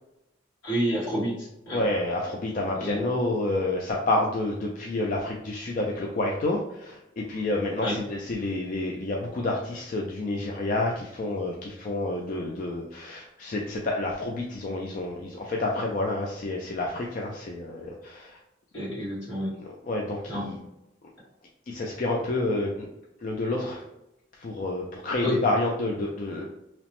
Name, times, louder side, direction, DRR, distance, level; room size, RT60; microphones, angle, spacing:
voice 1, 0.6-1.8 2.8-3.0 7.8-8.0 18.7-19.5 20.3-20.5 25.2-25.4, equal, 75° left, -7 dB, 1.5 m, -29 dB
voice 2, 1.7-18.4 19.6-20.6 21.7-22.9 23.2-23.8 24.4-26.5, left 2 dB, 45° left, -1 dB, 0.3 m, -29 dB
2.9 x 2.0 x 2.9 m, 0.88 s
head